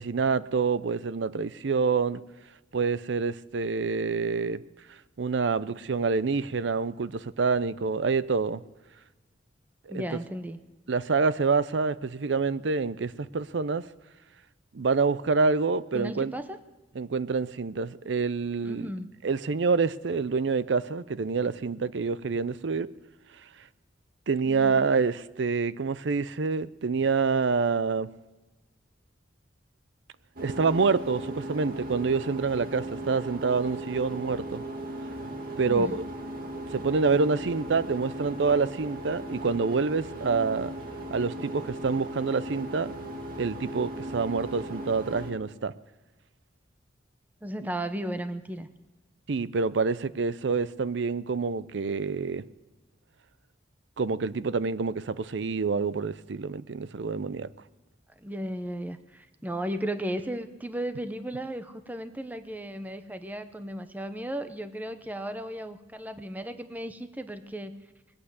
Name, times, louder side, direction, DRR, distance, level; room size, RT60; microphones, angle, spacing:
voice 1, 0.0-2.2 2.7-4.6 5.2-8.6 9.9-10.0 10.9-13.9 14.7-16.3 17.0-18.9 19.2-22.9 24.3-28.1 30.4-34.6 35.6-36.0 36.7-40.7 41.1-42.9 43.4-45.7 49.3-52.4 54.0-57.5, right 4 dB, 70° right, 0.5 m, -27 dB
voice 2, 9.9-10.6 15.9-16.6 18.6-19.1 24.4-24.8 35.5-36.0 47.4-48.7 58.1-67.7, right 1 dB, 10° right, 0.7 m, -35 dB
sound 1, 30.4-45.3, right 1 dB, 50° right, 2.1 m, -37 dB
20.0 x 8.7 x 8.1 m
head